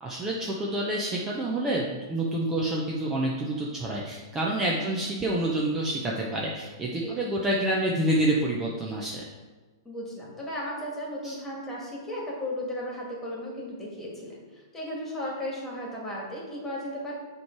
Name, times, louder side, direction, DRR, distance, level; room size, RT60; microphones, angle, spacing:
voice 1, 0.0-9.2 11.2-11.3, right 1 dB, 15° right, -3 dB, 0.7 m, -28 dB
voice 2, 9.9-17.2, left 1 dB, 10° left, -4 dB, 1.9 m, -35 dB
6.9 x 3.2 x 4.6 m, 1.4 s
hypercardioid pair, 140°, 2 cm